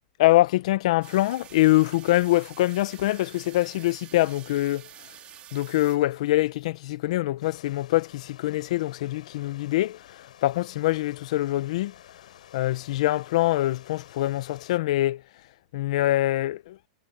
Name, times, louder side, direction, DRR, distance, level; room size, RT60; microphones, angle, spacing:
voice 1, 0.2-5.1 5.5-11.9 12.5-15.2 15.7-16.8, left 16 dB, 60° left, 0.9 m, -24 dB
sound 1, 1.0-6.5, right 12 dB, 30° right, 3.3 m, -48 dB
sound 2, 7.4-14.8, left 11 dB, 85° left, 7.7 m, -51 dB
supercardioid pair, 150°, 4 cm